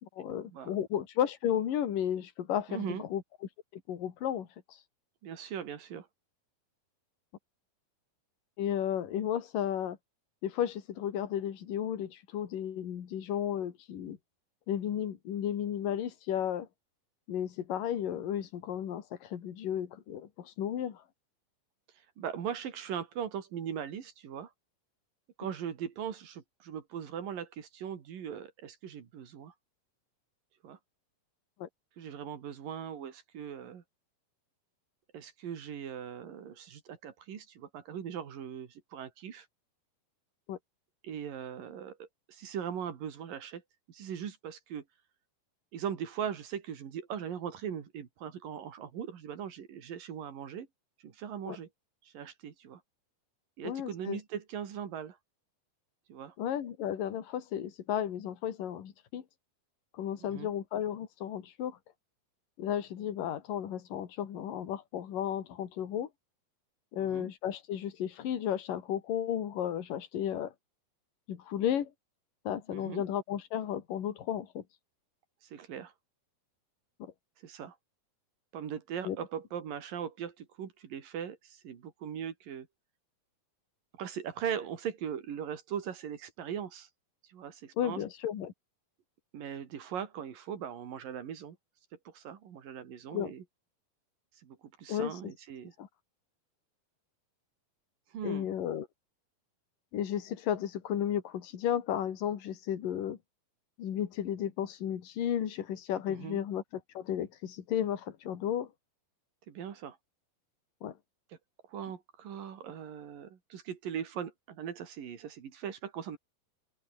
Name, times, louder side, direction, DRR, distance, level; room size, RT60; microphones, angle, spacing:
voice 1, 0.0-3.2 3.7-4.8 8.6-10.0 10.4-14.2 14.7-16.7 17.3-21.0 31.6-31.7 40.5-40.6 51.5-51.6 53.6-54.2 56.4-59.2 59.9-61.8 62.6-66.1 66.9-70.5 71.3-71.9 72.5-74.6 77.0-77.1 79.0-79.2 87.8-88.5 93.1-93.3 94.9-95.3 95.8-95.9 98.2-98.9 99.9-103.2 103.8-106.6 107.0-108.7 110.8-111.0, left 10 dB, 65° left, 3.9 m, -33 dB
voice 2, 2.7-3.0 5.2-6.1 22.2-24.5 25.4-29.5 30.6-30.8 32.0-33.8 35.1-39.5 41.0-43.6 43.9-44.8 45.7-50.7 51.0-51.7 52.0-52.8 53.6-55.2 56.1-56.4 60.2-60.5 67.0-67.3 72.7-73.0 75.4-75.9 77.4-77.8 78.5-82.7 83.9-86.9 87.3-88.0 89.3-91.6 92.1-93.4 94.4-95.7 98.1-98.5 106.1-106.4 109.5-110.0 111.7-116.2, right 8 dB, 65° right, 4.1 m, -40 dB
open air
omnidirectional pair, 4.3 m